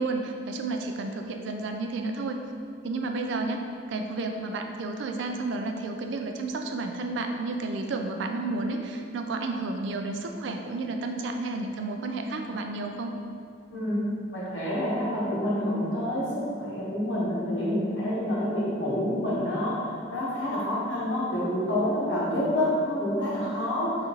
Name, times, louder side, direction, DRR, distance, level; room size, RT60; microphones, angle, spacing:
voice 1, 0.0-2.4 2.8-13.2, right 3 dB, 65° right, 4 dB, 0.4 m, -31 dB
voice 2, 13.7-14.0 14.3-24.0, left 1 dB, 70° left, -7 dB, 1.1 m, -28 dB
4.1 x 3.6 x 2.9 m, 2.4 s
head